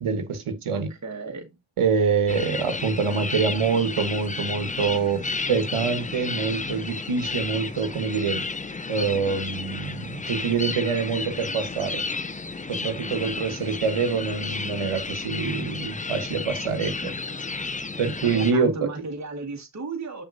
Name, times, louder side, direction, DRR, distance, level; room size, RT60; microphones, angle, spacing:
voice 1, 0.0-0.9 1.8-5.2 5.5-8.4 8.9-12.0 12.7-17.1 18.0-18.9, right 5 dB, 80° right, 1.3 m, -25 dB
voice 2, 0.7-1.5 18.2-20.2, right 3 dB, 35° right, 1.5 m, -34 dB
sound 1, 2.3-18.5, left 3 dB, 15° left, 0.4 m, -32 dB
6.6 x 6.2 x 2.6 m
wide cardioid pair, 130°, 49 cm